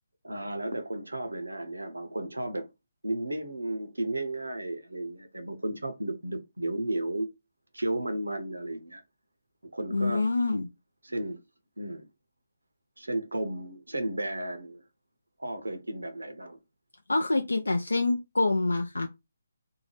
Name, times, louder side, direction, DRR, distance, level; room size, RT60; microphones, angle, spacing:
voice 1, 0.2-2.7 3.0-7.3 7.7-9.0 9.6-10.3 11.0-11.4 11.8-12.1 13.0-14.8 15.4-16.6, right 1 dB, 90° right, 0.7 m, -33 dB
voice 2, 9.9-10.7 17.1-19.1, left 2 dB, 85° left, 0.4 m, -26 dB
2.7 x 2.2 x 3.1 m
figure-of-eight pair, 145°, 0 cm